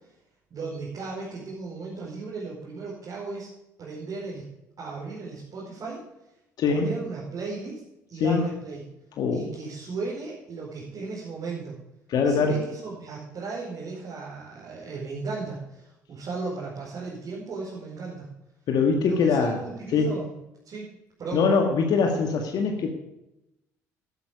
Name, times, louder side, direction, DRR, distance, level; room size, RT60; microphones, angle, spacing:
voice 1, 0.5-3.5 3.8-4.5 4.8-6.0 6.7-7.8 8.1-8.8 9.3-11.8 12.2-18.3 19.0-20.3 20.6-20.9 21.2-21.4, right 4 dB, 50° right, -5 dB, 5.0 m, -36 dB
voice 2, 6.6-6.9 8.2-8.5 9.2-9.5 12.1-12.6 18.7-19.6 19.9-20.2 21.3-22.9, left 5 dB, 55° left, 3 dB, 1.9 m, -23 dB
12.0 x 11.0 x 5.2 m, 0.90 s
hypercardioid pair, 55°, 8 cm